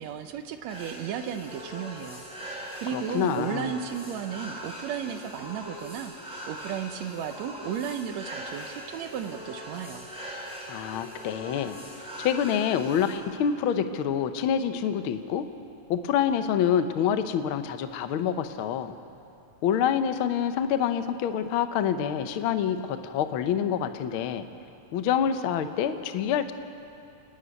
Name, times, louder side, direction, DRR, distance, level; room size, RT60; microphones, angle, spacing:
voice 1, 0.0-10.1, right 8 dB, 75° right, 8 dB, 1.8 m, -35 dB
sound 1, 0.7-13.2, equal, ahead, 4.3 m, -41 dB
voice 2, 2.9-3.7 10.7-11.8 12.2-15.5 15.9-18.9 19.6-24.4 24.9-26.5, left 8 dB, 75° left, 9 dB, 1.2 m, -27 dB
28.5 x 10.0 x 9.5 m, 2.7 s
omnidirectional pair, 3.4 m